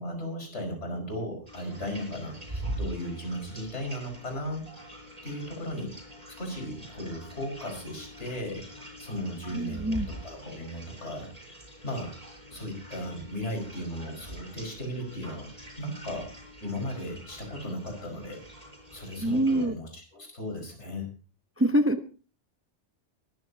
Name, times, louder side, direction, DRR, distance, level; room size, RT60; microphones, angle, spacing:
voice 1, 0.0-4.6 5.2-5.9 6.4-11.5 11.8-12.1 12.5-15.5 15.8-16.3 16.6-18.4 18.9-21.1, equal, 70° left, 2 dB, 5.5 m, -36 dB
sound 1, 1.5-19.7, right 1 dB, 30° right, 7.6 m, -44 dB
voice 2, 9.5-10.1 19.2-19.7 21.6-22.0, right 1 dB, 15° right, 8 dB, 0.6 m, -25 dB
22.5 x 13.5 x 2.8 m, 0.36 s
omnidirectional pair, 1.2 m